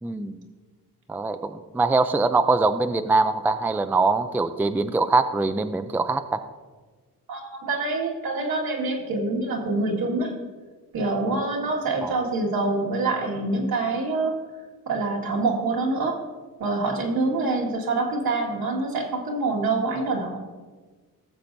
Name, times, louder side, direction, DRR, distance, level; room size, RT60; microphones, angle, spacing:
voice 1, 0.0-0.4 1.1-6.4 12.0-12.1, right 3 dB, 5° right, 9 dB, 0.4 m, -23 dB
voice 2, 7.3-10.3 10.9-14.4 14.9-16.2 16.6-20.4, right 3 dB, 75° right, -1 dB, 2.0 m, -25 dB
17.0 x 7.0 x 2.6 m, 1.4 s
cardioid pair, 80°, 36 cm